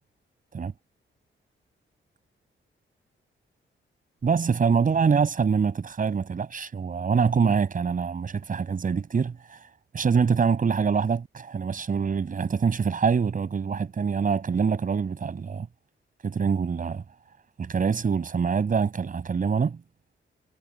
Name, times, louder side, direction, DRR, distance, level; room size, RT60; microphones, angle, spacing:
voice 1, 4.2-9.6 9.9-15.7 16.2-17.0 17.6-19.8, right 6 dB, 40° right, 5.6 m, -25 dB
wide cardioid pair, 165°, 21 cm